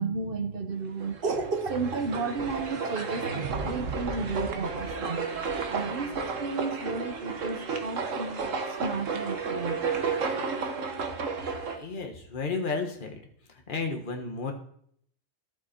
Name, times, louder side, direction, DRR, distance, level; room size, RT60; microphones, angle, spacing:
voice 1, 0.0-8.5 8.8-9.8, right 4 dB, 45° right, 8 dB, 1.0 m, -33 dB
sound 1, 1.0-11.8, right 4 dB, 70° right, 1.5 m, -32 dB
voice 2, 11.7-13.2 13.5-14.5, left 4 dB, 40° left, 4 dB, 1.5 m, -33 dB
12.0 x 8.1 x 4.4 m, 0.64 s
omnidirectional pair, 1.4 m